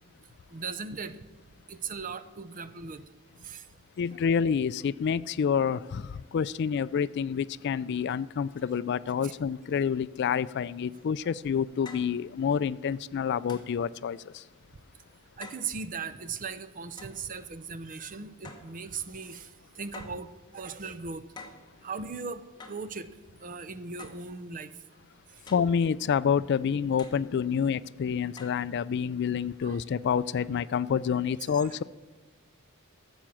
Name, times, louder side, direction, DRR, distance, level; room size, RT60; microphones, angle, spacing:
voice 1, 0.5-1.2 1.7-3.0 3.4-3.6 9.2-9.3 15.4-19.5 19.8-21.2 21.8-22.4 22.7-23.1 23.4-24.7 29.6-29.8 31.5-31.7, right 5 dB, 40° right, 0.6 m, -38 dB
voice 2, 4.0-14.4 25.5-31.8, left 7 dB, 50° left, 0.3 m, -28 dB
sound 1, 11.0-11.1 11.9-12.2 13.5-13.8 15.4-15.7 17.0-17.2 18.4-18.8 19.9-20.3 21.4-21.7 22.6-22.9 24.0-24.3 25.5-25.8 27.0-27.2 28.4-28.6, left 4 dB, 20° left, 1.2 m, -47 dB
13.5 x 7.1 x 7.6 m
head